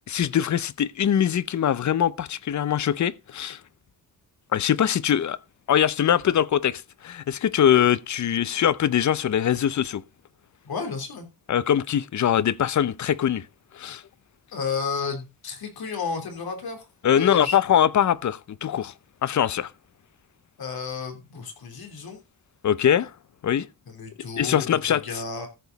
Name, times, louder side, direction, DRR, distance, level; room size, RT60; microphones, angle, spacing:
voice 1, 0.1-3.6 4.5-5.4 5.7-10.0 11.5-13.4 13.7-14.0 17.0-18.9 19.2-19.7 22.6-23.1 23.4-23.7 24.4-25.2, left 9 dB, 50° left, 0.7 m, -22 dB
voice 2, 10.6-11.3 14.5-16.8 17.2-17.6 20.6-22.2 23.9-25.5, left 5 dB, 80° left, 3.4 m, -32 dB
14.0 x 7.2 x 4.0 m
wide cardioid pair, 150°, 36 cm